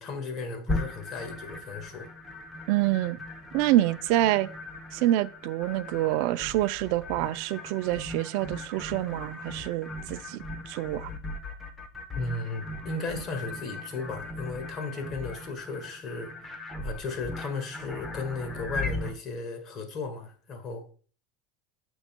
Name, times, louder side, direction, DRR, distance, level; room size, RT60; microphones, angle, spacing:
voice 1, 0.0-2.1 12.1-16.3 16.8-20.8, left 3 dB, 35° left, 1.7 m, -35 dB
sound 1, 0.7-19.1, left 2 dB, 10° left, 1.0 m, -38 dB
voice 2, 2.7-3.2 3.5-4.5 4.9-11.1, right 15 dB, 60° right, 0.4 m, -27 dB
9.0 x 6.2 x 2.2 m
supercardioid pair, 140°, 0 cm